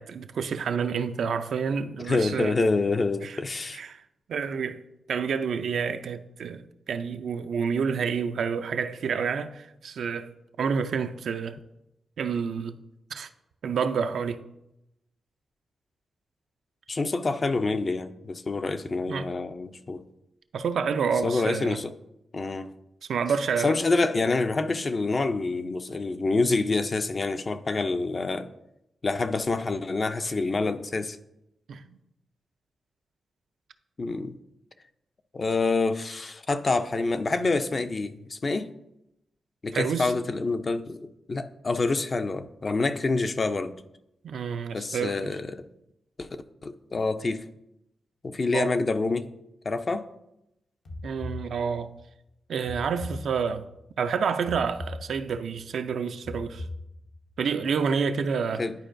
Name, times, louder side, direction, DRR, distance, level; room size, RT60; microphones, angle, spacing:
voice 1, 0.0-2.5 3.2-3.4 3.7-4.0 4.3-4.8 5.1-6.6 6.9-10.3 10.6-11.6 12.2-12.8 13.1-13.3 13.6-14.4 19.1-19.3 20.5-21.8 23.1-23.7 31.7-31.8 39.7-40.1 44.2-45.3 48.5-48.7 51.0-51.9 52.5-53.7 54.0-56.6 57.4-58.6, right 6 dB, 80° right, 0.4 m, -28 dB
voice 2, 2.1-3.8 16.9-20.0 21.2-21.9 22.3-22.7 23.6-28.5 29.0-31.2 34.0-34.3 35.3-38.7 39.6-43.7 44.7-45.7 46.2-46.3 46.6-47.4 48.2-49.3 49.6-50.1 58.6-58.7, left 3 dB, 40° left, 0.4 m, -27 dB
sound 1, 50.9-52.0 52.7-53.8 54.5-55.6 56.2-57.4, left 2 dB, 70° left, 0.8 m, -40 dB
10.5 x 4.5 x 2.6 m
cardioid pair, 80°, 0 cm